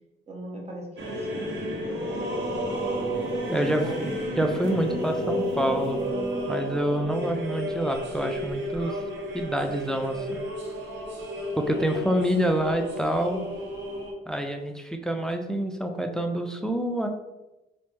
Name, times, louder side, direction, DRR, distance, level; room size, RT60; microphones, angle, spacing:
voice 1, 0.3-2.3 3.5-4.1 11.9-12.2, right 1 dB, 30° right, -1 dB, 0.9 m, -40 dB
sound 1, 1.0-14.1, equal, 65° right, 0.8 m, -31 dB
voice 2, 3.5-3.8 4.4-6.0 6.5-9.0 9.3-10.4 11.6-13.5 14.3-17.1, right 1 dB, 5° left, 5 dB, 0.3 m, -27 dB
4.1 x 2.0 x 3.3 m, 1.0 s
cardioid pair, 90°, 20 cm